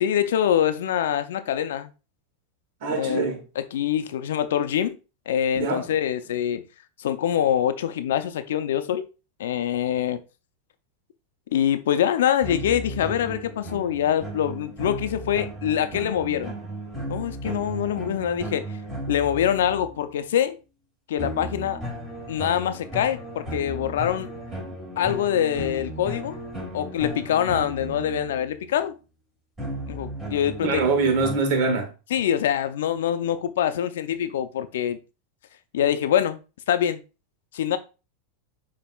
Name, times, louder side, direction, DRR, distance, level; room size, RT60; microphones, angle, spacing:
voice 1, 0.0-1.9 3.0-3.3 3.6-5.0 5.3-6.6 7.0-9.1 9.4-10.2 11.5-16.5 17.1-18.6 19.1-20.6 21.1-21.8 22.3-24.3 25.0-26.4 26.7-29.0 29.9-30.8 32.1-35.0 35.7-36.4 36.7-37.0 37.5-37.8, left 10 dB, 80° left, 0.5 m, -24 dB
voice 2, 2.8-3.4 5.5-5.9 30.6-31.9, right 4 dB, 65° right, 1.5 m, -23 dB
sound 1, 12.4-20.0 21.2-28.7 29.6-31.4, right 1 dB, 20° right, 2.6 m, -35 dB
6.9 x 2.9 x 2.3 m
hypercardioid pair, 115°, 0 cm